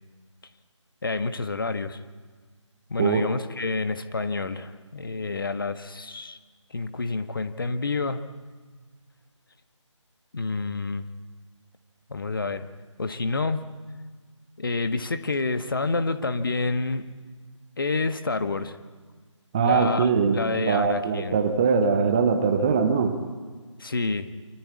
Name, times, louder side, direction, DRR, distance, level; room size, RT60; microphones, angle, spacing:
voice 1, 1.0-2.0 2.9-6.4 6.7-8.2 10.3-11.1 12.1-12.6 13.0-13.7 14.6-17.1 17.8-18.8 19.6-21.4 23.8-24.3, left 3 dB, 45° left, 9 dB, 1.6 m, -28 dB
voice 2, 19.5-23.1, right 5 dB, 15° right, 7 dB, 1.0 m, -22 dB
27.5 x 24.5 x 8.6 m, 1.5 s
figure-of-eight pair, 160°, 16 cm